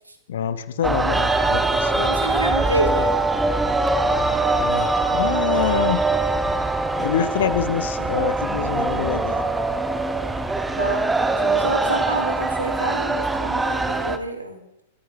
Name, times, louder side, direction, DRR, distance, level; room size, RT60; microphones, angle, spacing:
voice 1, 0.3-2.1 4.6-6.0 7.0-9.4, left 9 dB, 60° left, 14 dB, 1.3 m, -26 dB
sound 1, 0.8-14.2, right 2 dB, 10° right, 1.4 m, -22 dB
voice 2, 2.0-3.2 10.8-14.6, right 2 dB, 85° right, 5 dB, 3.1 m, -28 dB
28.5 x 14.5 x 3.4 m, 0.82 s
figure-of-eight pair, 100°, 0 cm